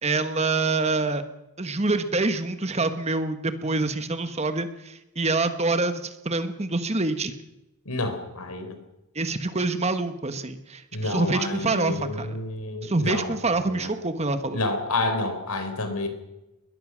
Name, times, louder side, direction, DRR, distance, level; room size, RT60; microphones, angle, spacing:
voice 1, 0.0-1.2 1.6-7.4 9.1-12.4 12.8-14.6, right 3 dB, 30° right, 9 dB, 1.2 m, -26 dB
voice 2, 7.9-8.8 10.9-13.9 14.5-16.1, left 2 dB, 85° left, 8 dB, 4.0 m, -29 dB
21.5 x 21.0 x 6.2 m, 0.97 s
head